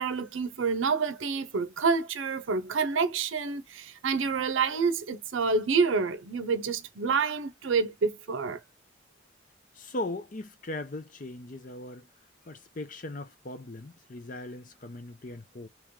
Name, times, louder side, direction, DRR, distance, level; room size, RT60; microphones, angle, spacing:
voice 1, 0.0-8.6, right 5 dB, 80° right, 0.6 m, -28 dB
voice 2, 9.7-12.1 12.4-15.7, left 2 dB, 40° left, 0.6 m, -39 dB
3.1 x 3.0 x 3.6 m
head